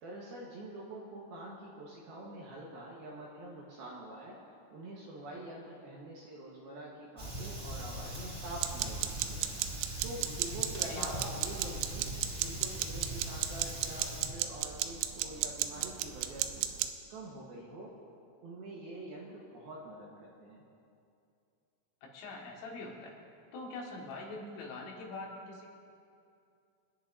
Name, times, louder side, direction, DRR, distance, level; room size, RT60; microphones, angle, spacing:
voice 1, 0.0-4.4 4.7-9.5 10.0-12.1 12.4-16.7 17.1-17.9 18.4-20.6, right 1 dB, 65° right, -4 dB, 2.6 m, -45 dB
Fire, 7.2-14.3, equal, 15° right, 3.4 m, -41 dB
sound 1, 8.5-16.9, right 12 dB, 85° right, 2.5 m, -36 dB
voice 2, 10.8-11.1 22.0-23.2 23.5-25.7, left 3 dB, 75° left, -2 dB, 4.1 m, -43 dB
29.0 x 10.5 x 2.7 m, 2.5 s
omnidirectional pair, 5.6 m